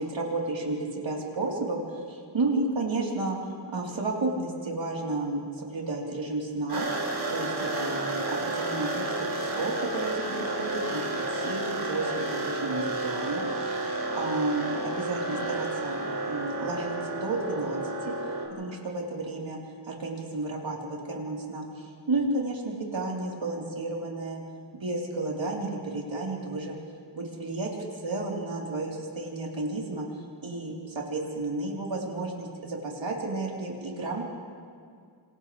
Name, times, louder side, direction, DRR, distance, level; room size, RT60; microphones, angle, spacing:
voice 1, 0.0-3.4 3.7-6.9 7.3-16.0 16.3-18.1 18.6-19.6 19.9-24.4 24.7-26.8 27.1-30.1 30.4-34.3, right 2 dB, 75° right, -3 dB, 4.2 m, -32 dB
sound 1, 6.7-18.5, right 2 dB, 55° right, 5.0 m, -31 dB
27.5 x 27.0 x 3.5 m, 2.2 s
wide cardioid pair, 60°, 45 cm